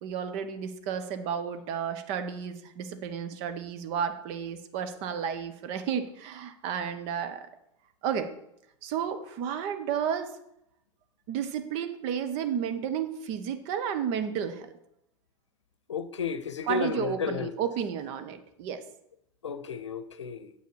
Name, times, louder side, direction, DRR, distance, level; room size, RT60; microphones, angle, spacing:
voice 1, 0.0-7.5 8.0-8.3 8.8-10.3 11.3-14.7 16.7-18.8, right 8 dB, 50° right, 1.1 m, -32 dB
voice 2, 15.9-17.5 19.4-20.5, left 5 dB, 75° left, 0.7 m, -32 dB
9.2 x 8.2 x 4.8 m
figure-of-eight pair, 85°, 15 cm